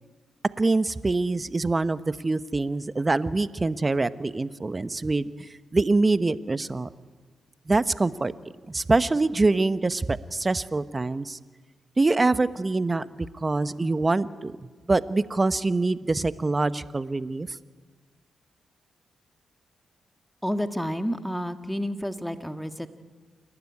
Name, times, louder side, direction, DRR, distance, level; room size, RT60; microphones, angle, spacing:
voice 1, 0.6-6.9 7.7-8.3 8.7-11.4 12.0-13.1 13.4-14.6 14.9-17.6, right 3 dB, 30° right, 14 dB, 1.0 m, -25 dB
voice 2, 20.4-22.9, equal, 5° left, 8 dB, 1.7 m, -30 dB
28.0 x 12.0 x 9.7 m, 1.4 s
supercardioid pair, 45°, 0 cm